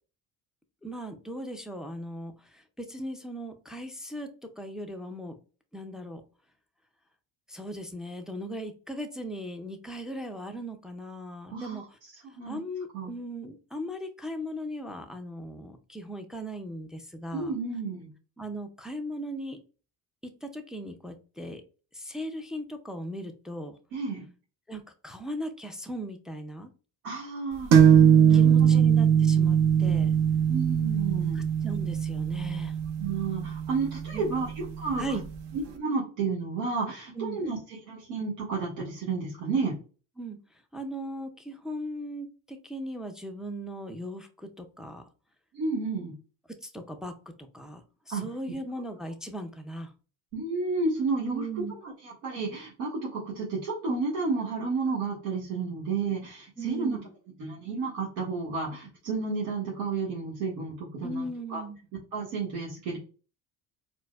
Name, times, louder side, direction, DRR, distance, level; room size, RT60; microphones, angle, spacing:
voice 1, 0.8-4.3 4.6-5.4 5.7-6.2 7.5-12.0 12.5-17.5 18.4-19.6 20.2-21.6 21.9-23.7 24.7-26.7 28.3-30.1 31.3-32.7 34.1-34.2 35.0-35.2 37.2-37.4 40.2-40.4 40.7-45.0 46.6-49.9 51.3-51.7 56.6-57.1 61.0-61.8, equal, ahead, 5 dB, 0.3 m, -38 dB
voice 2, 11.5-11.8 12.2-12.6 12.9-13.1 17.3-18.1 23.9-24.3 27.0-27.7 28.3-28.8 30.5-31.4 33.0-35.1 35.5-37.6 37.9-39.7 45.5-46.1 48.1-48.2 50.3-51.5 51.8-57.0 57.4-61.6 62.1-63.0, right 4 dB, 85° right, -6 dB, 1.3 m, -31 dB
sound 1, 27.7-35.2, right 8 dB, 60° right, 0.8 m, -21 dB
4.4 x 2.1 x 2.3 m, 0.36 s
supercardioid pair, 75°, 47 cm